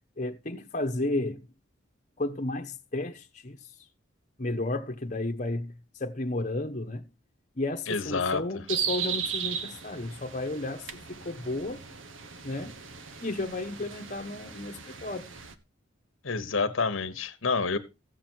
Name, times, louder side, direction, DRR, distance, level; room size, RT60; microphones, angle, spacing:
voice 1, 0.2-1.5 2.2-3.6 4.4-5.7 6.0-7.1 7.6-11.8 12.4-12.7 13.2-15.3, left 2 dB, 40° left, 1.1 m, -33 dB
voice 2, 7.9-8.6 16.2-17.8, left 4 dB, 80° left, 1.1 m, -28 dB
sound 1, 8.7-15.5, right 7 dB, 70° right, 1.1 m, -36 dB
15.0 x 7.5 x 4.5 m
head